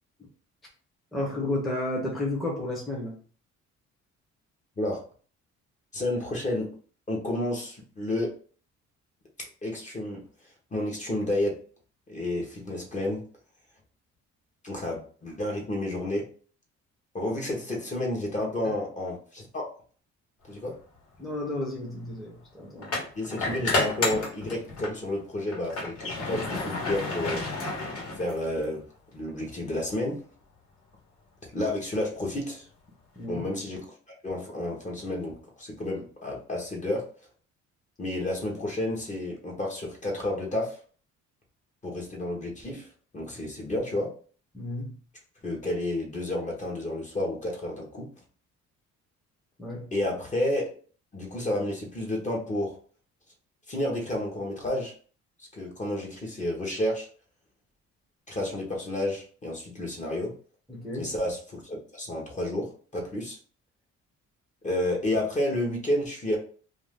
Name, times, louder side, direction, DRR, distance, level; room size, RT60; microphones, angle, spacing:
voice 1, 1.1-3.2 18.6-18.7 21.2-23.0 33.2-33.4 44.5-45.0 49.6-49.9 60.7-61.1, left 1 dB, ahead, -4 dB, 0.7 m, -32 dB
voice 2, 5.9-6.7 7.1-8.3 9.6-10.2 10.7-11.6 12.1-13.2 14.6-16.3 17.1-19.7 20.5-20.8 23.2-27.4 28.2-28.8 29.1-30.2 31.4-32.6 33.3-33.8 34.2-37.1 38.0-40.8 41.8-42.9 43.1-44.1 45.4-48.1 49.9-50.7 51.1-52.8 53.7-54.9 55.4-57.1 58.3-60.3 61.0-63.4 64.6-66.4, left 1 dB, 25° left, -1 dB, 0.9 m, -30 dB
sound 1, 20.8-21.0 22.8-25.0 25.4-28.6, left 3 dB, 50° left, 1.3 m, -31 dB
2.6 x 2.3 x 3.5 m, 0.42 s
cardioid pair, 120°, 29 cm